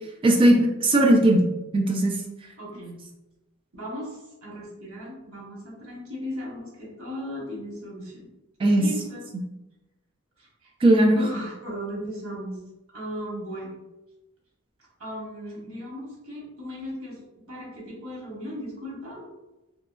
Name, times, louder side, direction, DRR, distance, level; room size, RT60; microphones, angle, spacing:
voice 1, 0.2-2.2 8.6-8.8 10.8-11.2, right 1 dB, 25° right, 1 dB, 0.3 m, -18 dB
voice 2, 2.6-3.0 3.7-8.3 8.7-9.2 10.4-10.7 11.1-12.6 12.9-13.7 15.0-19.3, equal, 90° right, -4 dB, 1.0 m, -37 dB
2.8 x 2.3 x 2.3 m, 0.99 s
head